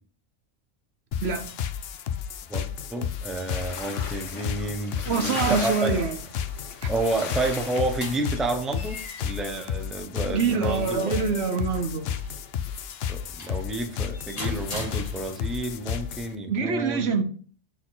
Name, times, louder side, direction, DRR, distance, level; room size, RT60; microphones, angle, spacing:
sound 1, 1.1-16.4, left 8 dB, 60° left, 0.8 m, -32 dB
voice 1, 2.5-6.0 6.9-11.1 13.1-17.1, right 2 dB, ahead, 0.7 m, -30 dB
sound 2, 3.5-8.2, left 5 dB, 80° left, 1.4 m, -37 dB
voice 2, 5.1-6.2 6.8-6.9 10.3-12.1 16.5-17.2, right 5 dB, 60° right, 1.1 m, -25 dB
sound 3, 7.6-15.6, left 2 dB, 35° left, 1.2 m, -42 dB
8.1 x 4.2 x 4.0 m
omnidirectional pair, 1.2 m